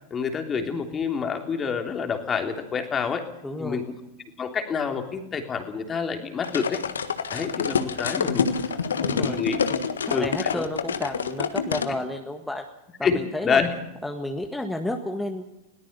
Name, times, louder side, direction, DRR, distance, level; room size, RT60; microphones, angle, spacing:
voice 1, 0.1-3.3 3.6-3.9 4.4-6.8 7.3-8.5 9.1-9.6 10.1-10.7 13.0-13.2 13.4-13.7, left 6 dB, 20° left, 5 dB, 3.3 m, -27 dB
voice 2, 3.4-3.8 8.2-12.6 13.0-13.6 14.0-15.5, left 1 dB, 5° left, 4 dB, 1.7 m, -32 dB
sound 1, 6.4-11.9, left 6 dB, 70° left, 1.6 m, -27 dB
21.5 x 18.5 x 6.9 m, 0.93 s
figure-of-eight pair, 90°, 0 cm